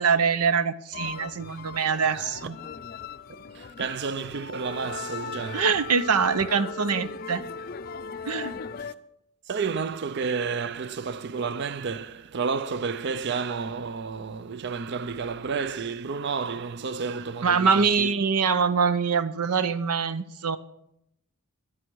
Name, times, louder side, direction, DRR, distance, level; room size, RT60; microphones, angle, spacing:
voice 1, 0.0-2.5 5.5-7.4 8.3-8.6 17.4-20.6, right 5 dB, 85° right, 0.7 m, -24 dB
sound 1, 0.9-8.9, left 5 dB, 40° left, 0.4 m, -38 dB
voice 2, 3.5-5.7 8.8-8.9 9.5-18.1, right 5 dB, 50° right, 0.4 m, -31 dB
23.0 x 8.9 x 4.6 m
head